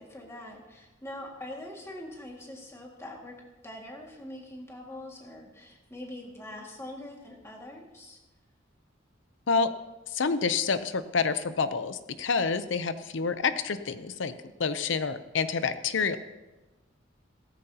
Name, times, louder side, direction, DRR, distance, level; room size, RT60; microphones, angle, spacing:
voice 1, 0.0-3.3 3.6-8.2, left 1 dB, 15° left, -1 dB, 2.0 m, -43 dB
voice 2, 10.1-14.3 14.6-16.2, left 5 dB, 70° left, 12 dB, 0.6 m, -28 dB
16.5 x 14.0 x 2.9 m, 1.1 s
head